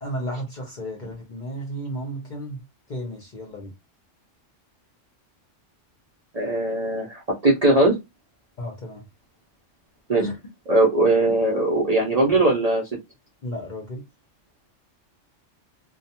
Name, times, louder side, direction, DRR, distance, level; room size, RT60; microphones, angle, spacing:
voice 1, 0.0-2.6 2.9-3.7 8.6-9.1 10.2-10.3 13.4-14.0, equal, 50° left, 0.7 m, -33 dB
voice 2, 6.3-8.0 10.1-10.2 10.7-12.8, right 2 dB, 45° right, 0.5 m, -20 dB
2.3 x 2.2 x 2.8 m
omnidirectional pair, 1.3 m